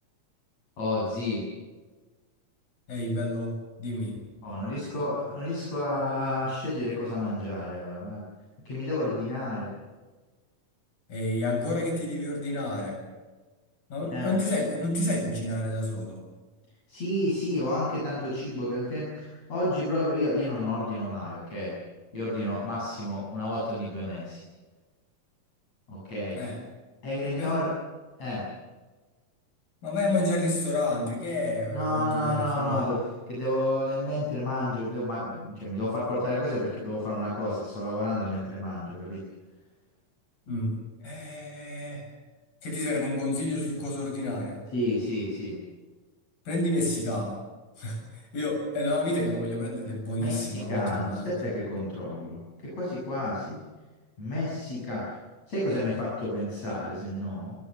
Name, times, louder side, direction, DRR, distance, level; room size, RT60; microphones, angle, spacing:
voice 1, 0.8-1.5 4.4-8.2 8.7-9.7 14.1-14.4 16.9-21.8 22.1-24.4 25.9-26.4 27.0-27.7 28.2-28.5 31.7-33.0 33.3-39.2 44.7-45.6 50.2-53.6 54.2-55.1 55.5-57.6, left 1 dB, 50° left, -7 dB, 9.0 m, -30 dB
voice 2, 2.9-4.2 11.1-13.0 13.9-16.2 26.3-26.6 27.2-27.6 29.8-32.9 40.5-40.8 41.0-42.0 42.6-44.6 46.5-47.4 47.8-51.4, left 1 dB, 80° left, 1 dB, 9.3 m, -30 dB
26.5 x 23.0 x 6.9 m, 1.3 s
omnidirectional pair, 4.0 m